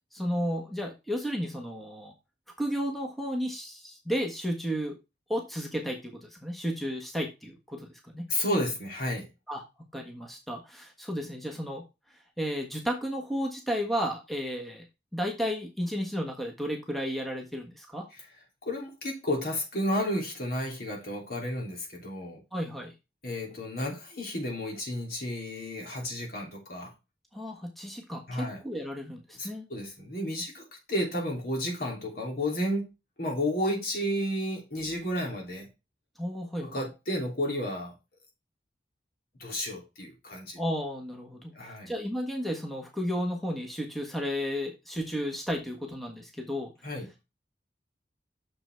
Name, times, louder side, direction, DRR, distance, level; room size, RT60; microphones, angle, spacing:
voice 1, 0.1-2.1 2.6-5.0 5.3-8.3 9.5-9.6 9.9-14.9 15.1-18.1 22.5-22.9 27.3-29.7 36.2-36.9 40.6-46.7, equal, ahead, 1.4 m, -33 dB
voice 2, 8.3-9.3 18.6-22.4 23.2-26.9 28.3-28.6 29.4-32.9 33.2-35.7 36.6-37.9 39.4-40.6 41.5-41.9 46.8-47.1, left 1 dB, 55° left, 3.2 m, -32 dB
6.8 x 5.8 x 4.5 m
head